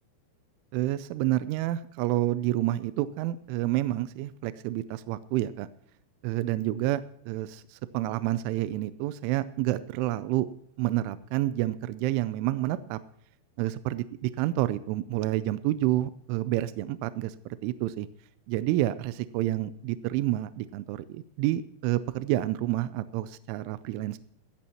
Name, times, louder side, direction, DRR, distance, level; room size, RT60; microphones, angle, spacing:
voice 1, 0.7-5.7 6.2-10.5 10.8-13.0 13.6-17.4 17.6-18.1 18.5-24.2, right 15 dB, 85° right, 14 dB, 2.9 m, -29 dB
15.5 x 14.0 x 2.9 m, 0.69 s
omnidirectional pair, 5.8 m